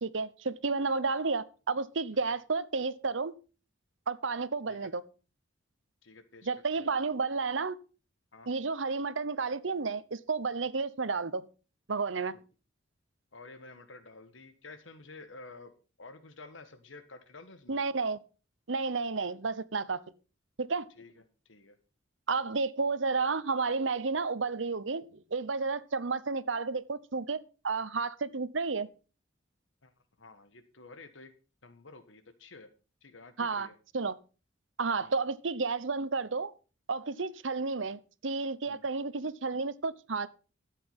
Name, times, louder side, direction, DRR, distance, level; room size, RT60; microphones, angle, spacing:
voice 1, 0.0-3.3 4.1-5.0 6.4-7.8 8.5-11.5 11.9-12.4 17.7-18.2 18.7-20.0 20.6-20.9 22.3-27.4 27.6-28.9 33.4-33.7 33.9-34.2 34.8-36.5 36.9-40.3, right 4 dB, 80° right, 0.9 m, -31 dB
voice 2, 6.0-6.9 8.3-8.5 13.3-15.7 16.0-17.8 21.0-21.8 29.8-29.9 30.2-31.3 31.6-32.7 33.0-33.7 35.0-35.1 38.7-38.8, left 3 dB, 85° left, 1.5 m, -51 dB
13.0 x 8.5 x 5.7 m
head